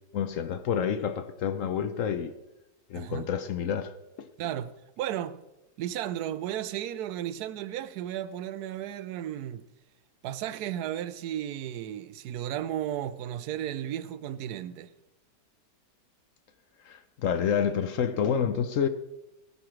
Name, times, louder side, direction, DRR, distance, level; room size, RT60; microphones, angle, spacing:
voice 1, 0.1-2.3 2.9-4.3 16.9-18.9, left 8 dB, 65° left, 0.8 m, -29 dB
voice 2, 2.9-3.3 4.4-4.7 5.0-5.4 5.8-9.6 10.2-14.9, right 11 dB, 70° right, 1.1 m, -34 dB
17.0 x 9.7 x 3.2 m
omnidirectional pair, 2.0 m